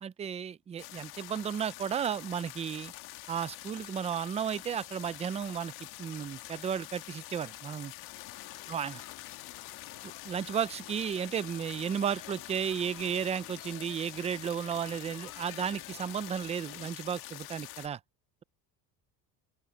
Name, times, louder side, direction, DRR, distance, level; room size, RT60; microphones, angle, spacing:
voice 1, 0.0-2.9 3.3-5.7 6.0-7.9 8.7-9.0 10.2-18.0, right 8 dB, 20° right, 0.3 m, -34 dB
sound 1, 0.8-17.9, left 18 dB, 75° left, 1.5 m, -46 dB
sound 2, 8.1-16.9, left 14 dB, 55° left, 2.0 m, -51 dB
voice 2, 8.1-8.2, left 5 dB, 20° left, 7.2 m, -69 dB
open air
cardioid pair, 155°, 38 cm